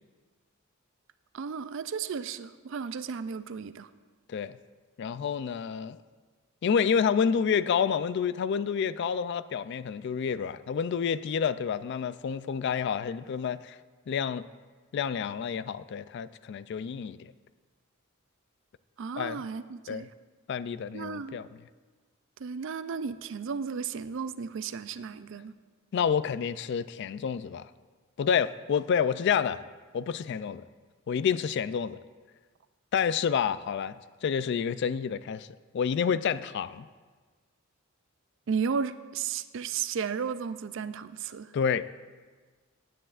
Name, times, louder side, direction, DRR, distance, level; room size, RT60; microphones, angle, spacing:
voice 1, 1.3-3.9 19.0-20.1 20.9-21.4 22.4-25.5 38.5-41.5, right 6 dB, 60° right, 0.4 m, -34 dB
voice 2, 5.0-6.0 6.6-13.8 14.1-14.5 14.9-17.3 19.2-19.4 19.9-20.1 20.5-21.5 25.9-27.7 28.2-29.6 29.9-30.6 31.1-32.0 32.9-35.5 35.7-36.9 41.5-41.9, left 7 dB, 55° left, 0.3 m, -29 dB
17.5 x 9.2 x 2.4 m
head